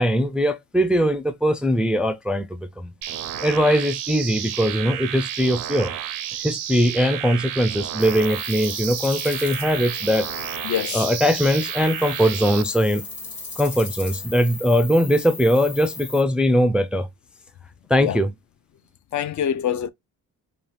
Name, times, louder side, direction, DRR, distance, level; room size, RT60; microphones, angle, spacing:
voice 1, 0.0-2.9 3.4-5.9 6.4-10.3 10.9-13.0 13.6-17.1 17.9-18.3, equal, 5° right, 0.3 m, -21 dB
sound 1, 3.0-12.6, right 11 dB, 60° right, 0.5 m, -31 dB
sound 2, 8.0-16.2, left 4 dB, 75° left, 1.4 m, -36 dB
voice 2, 10.6-11.0 18.0-18.2 19.1-19.9, left 9 dB, 55° left, 0.5 m, -25 dB
2.6 x 2.4 x 3.2 m
cardioid pair, 70°, 36 cm